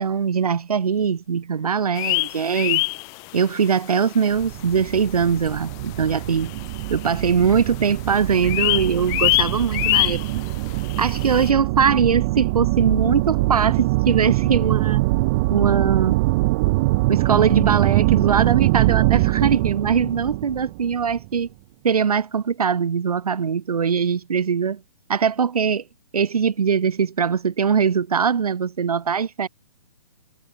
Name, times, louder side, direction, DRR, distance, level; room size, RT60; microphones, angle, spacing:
voice 1, 0.0-2.8 3.3-6.5 6.9-10.2 11.0-15.0 15.5-16.2 17.1-21.5 21.8-24.8 25.1-25.8 26.1-29.5, right 6 dB, 90° right, 1.5 m, -21 dB
sound 1, 2.0-3.7 4.0-4.1 4.6-4.7 5.5-5.6 5.8-5.9 6.1-7.2 7.5-7.9 8.1-11.5, left 28 dB, 20° left, 0.9 m, -24 dB
sound 2, 4.3-21.3, right 22 dB, 25° right, 4.5 m, -23 dB
hypercardioid pair, 165°, 19 cm